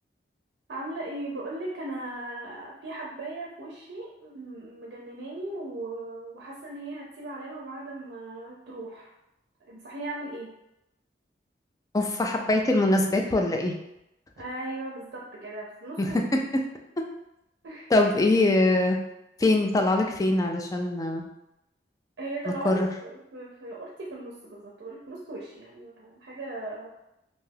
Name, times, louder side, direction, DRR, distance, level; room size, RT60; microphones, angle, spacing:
voice 1, 0.7-9.1 9.6-10.5 14.4-16.3 17.6-17.9 22.2-26.9, right 2 dB, 75° right, -3 dB, 0.5 m, -38 dB
voice 2, 11.9-13.8 16.0-16.4 17.9-19.0 19.4-21.3 22.5-22.9, left 2 dB, 20° left, 3 dB, 0.3 m, -23 dB
2.6 x 2.3 x 3.3 m, 0.86 s
head